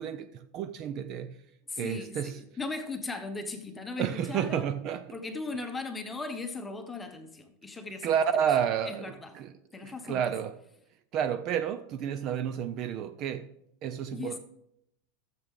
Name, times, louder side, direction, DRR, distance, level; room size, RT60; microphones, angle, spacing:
voice 1, 0.0-1.4 1.8-2.4 4.0-5.2 8.0-9.5 9.8-10.6 11.1-13.6 13.8-14.4, right 8 dB, 30° right, 0.3 m, -31 dB
voice 2, 1.7-2.3 2.6-4.7 5.1-8.1 8.9-9.3 9.7-10.2 14.1-14.4, left 3 dB, 10° left, 0.9 m, -37 dB
13.5 x 7.3 x 3.8 m
supercardioid pair, 175°, 0 cm